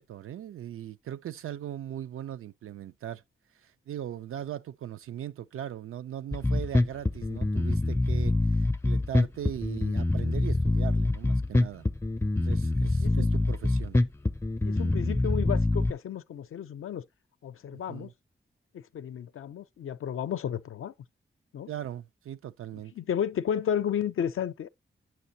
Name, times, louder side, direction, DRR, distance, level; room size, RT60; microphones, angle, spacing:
voice 1, 0.0-3.2 3.6-11.9 12.4-14.0 17.7-18.1 21.7-22.9, right 11 dB, 85° right, 0.4 m, -39 dB
Bass guitar, 6.3-15.9, left 2 dB, 10° left, 0.4 m, -25 dB
voice 2, 14.6-17.0 17.4-18.1 18.7-20.9 21.5-21.7 23.0-24.7, left 9 dB, 80° left, 0.5 m, -32 dB
9.0 x 6.3 x 2.7 m
cardioid pair, 60°, 21 cm